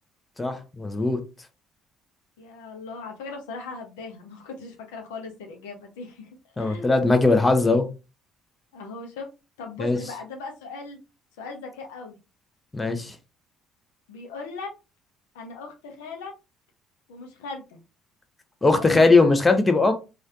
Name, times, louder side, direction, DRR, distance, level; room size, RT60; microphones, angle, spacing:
voice 1, 0.4-1.2 6.6-7.8 9.8-10.0 12.7-13.2 18.6-19.9, left 3 dB, 20° left, 7 dB, 0.7 m, -19 dB
voice 2, 2.4-6.3 6.6-7.1 8.7-9.3 9.6-11.0 11.4-12.2 14.1-14.7 15.3-16.3 17.1-17.8 18.8-19.1, left 4 dB, 75° left, 3 dB, 0.6 m, -38 dB
3.1 x 2.4 x 2.7 m, 0.29 s
figure-of-eight pair, 55°, 0 cm